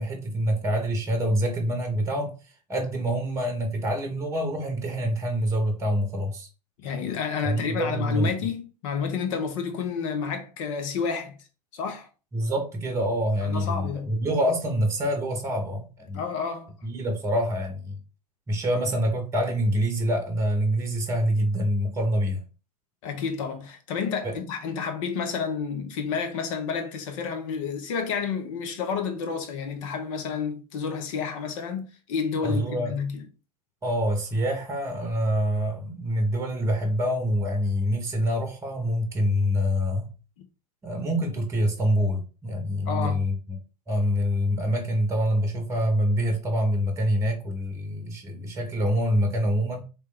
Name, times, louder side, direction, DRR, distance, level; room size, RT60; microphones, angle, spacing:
voice 1, 0.0-2.3 2.7-6.5 7.4-8.3 12.3-16.2 16.8-18.0 18.5-22.4 24.2-24.3 32.4-32.9 33.8-40.1 40.8-43.3 43.9-49.8, equal, 15° right, 1.1 m, -26 dB
voice 2, 6.8-11.4 11.7-12.1 13.4-14.2 16.1-16.8 23.0-33.3 40.4-40.5 42.9-43.2, left 6 dB, 50° left, 1.1 m, -30 dB
3.3 x 3.1 x 3.3 m
figure-of-eight pair, 100°, 21 cm